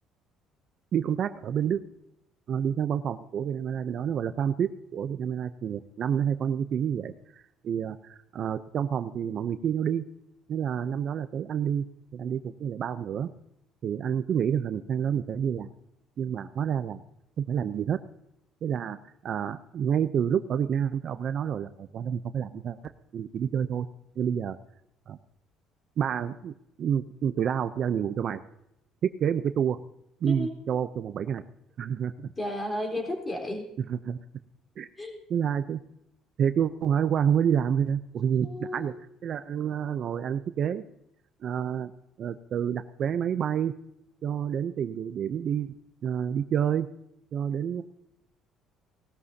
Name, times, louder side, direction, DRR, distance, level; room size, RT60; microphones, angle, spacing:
voice 1, 0.9-1.8 2.5-7.1 7.6-10.0 10.5-11.8 12.1-13.3 13.8-15.7 16.2-17.0 17.4-18.0 18.6-19.0 19.2-22.8 23.1-23.9 24.2-24.6 25.1-25.2 26.0-26.5 26.8-28.4 29.0-29.8 30.2-31.4 31.8-32.3 33.9-34.2 34.8-34.9 35.3-35.8 36.4-38.9 39.2-40.8 41.4-41.9 42.2-43.7 44.2-45.7 46.0-46.9 47.3-47.8, right 8 dB, 45° right, 11 dB, 0.6 m, -28 dB
voice 2, 30.3-30.6 32.4-33.7 35.0-35.2 38.4-39.0, left 1 dB, 15° left, 1 dB, 3.9 m, -33 dB
18.5 x 13.0 x 2.8 m, 0.80 s
cardioid pair, 145°, 0 cm